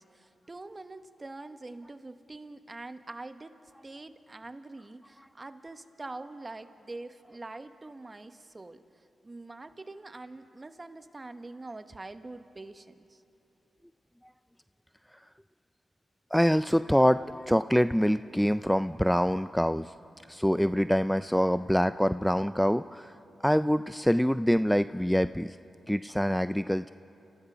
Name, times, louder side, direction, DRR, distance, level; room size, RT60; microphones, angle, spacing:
voice 1, 0.0-3.5 3.8-8.8 9.2-13.2, right 2 dB, 30° right, 9 dB, 1.1 m, -44 dB
voice 2, 16.3-19.9 20.3-23.1 23.4-25.6 25.9-26.9, equal, ahead, 12 dB, 0.4 m, -25 dB
29.5 x 15.0 x 6.2 m, 2.8 s
cardioid pair, 60°, 0 cm